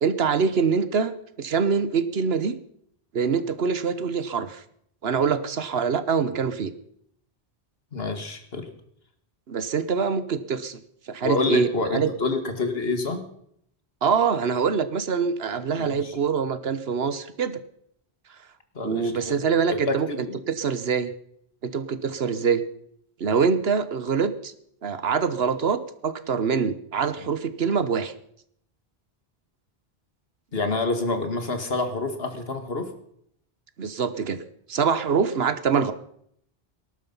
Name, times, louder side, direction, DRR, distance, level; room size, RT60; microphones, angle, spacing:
voice 1, 0.0-2.6 3.1-4.6 5.0-6.7 9.5-10.8 11.1-12.1 14.0-17.6 18.8-21.1 21.6-22.6 23.2-24.5 24.8-28.1 33.8-34.4 34.7-35.9, right 6 dB, 80° right, 13 dB, 1.3 m, -24 dB
voice 2, 7.9-8.7 11.2-13.2 15.8-16.1 18.7-19.4 19.7-20.4 30.5-32.9, left 3 dB, 75° left, 8 dB, 2.2 m, -27 dB
19.0 x 11.5 x 5.5 m, 0.69 s
omnidirectional pair, 1.0 m